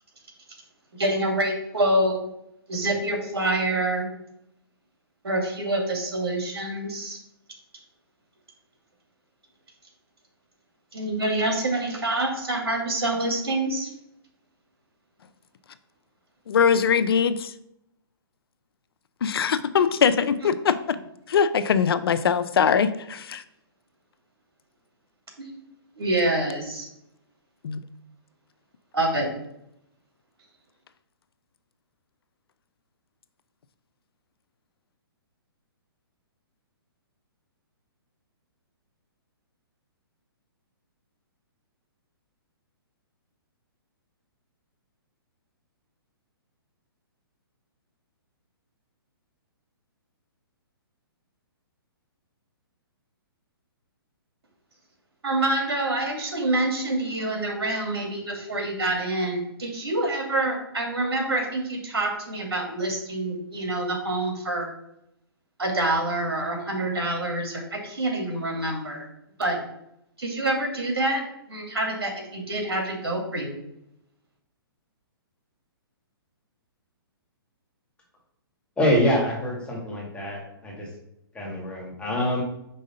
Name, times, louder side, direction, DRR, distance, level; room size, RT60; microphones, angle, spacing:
voice 1, 1.0-2.2 2.7-4.1 5.2-7.2 10.9-13.9 20.2-20.3 25.4-25.6 26.0-26.9 28.9-29.3 55.2-64.7 65.6-69.1 69.4-69.6 70.2-71.2 71.5-73.6, right 2 dB, 90° right, 0 dB, 2.5 m, -26 dB
voice 2, 16.5-17.5 19.2-21.0 21.3-23.4 27.6-27.8, left 7 dB, 70° left, 14 dB, 0.5 m, -22 dB
voice 3, 78.8-80.9 81.3-82.4, equal, 10° left, -3 dB, 1.8 m, -25 dB
5.4 x 3.7 x 5.5 m, 0.80 s
hypercardioid pair, 140°, 13 cm